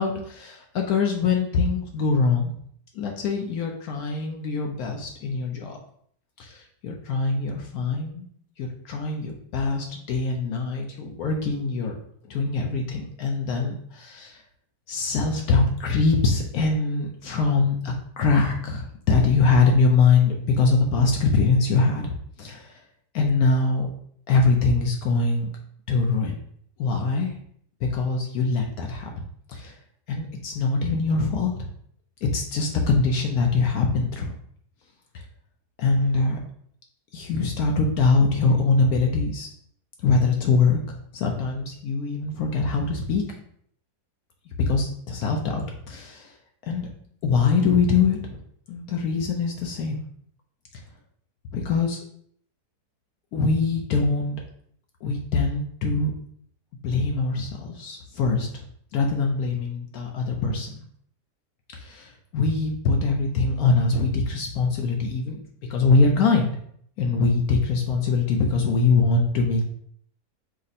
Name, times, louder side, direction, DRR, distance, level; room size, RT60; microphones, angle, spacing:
voice 1, 0.0-2.5 2.9-5.8 6.4-8.2 8.6-12.0 12.3-14.4 14.9-22.1 22.4-22.8 23.1-23.9 24.3-25.5 25.9-26.3 26.8-27.3 27.8-29.1 29.5-29.7 30.1-31.7 32.2-34.3 35.8-36.4 37.1-39.5 40.0-40.8 41.1-43.2 44.6-46.3 46.7-46.9 47.2-48.2 48.7-50.0 51.5-52.0 53.3-54.4 55.0-56.1 56.8-58.5 58.9-60.8 61.7-65.4 65.7-66.6 67.0-69.6, left 4 dB, 70° left, 1 dB, 1.0 m, -23 dB
5.1 x 2.1 x 4.0 m, 0.63 s
omnidirectional pair, 1.7 m